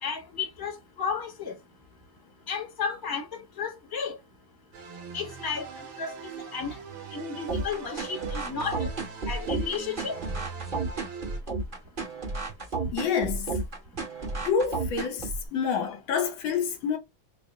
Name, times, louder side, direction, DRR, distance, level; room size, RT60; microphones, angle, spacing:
voice 1, 0.0-1.5 2.5-4.2 5.1-6.2 6.5-6.7 7.1-8.9 9.3-10.1, left 5 dB, 15° left, 1.0 m, -33 dB
sound 1, 4.7-11.4, right 6 dB, 85° right, 1.8 m, -41 dB
sound 2, 7.5-15.5, right 3 dB, 30° right, 1.0 m, -32 dB
voice 2, 12.9-13.6 14.4-17.0, left 6 dB, 75° left, 1.6 m, -28 dB
4.7 x 2.1 x 3.5 m
omnidirectional pair, 2.2 m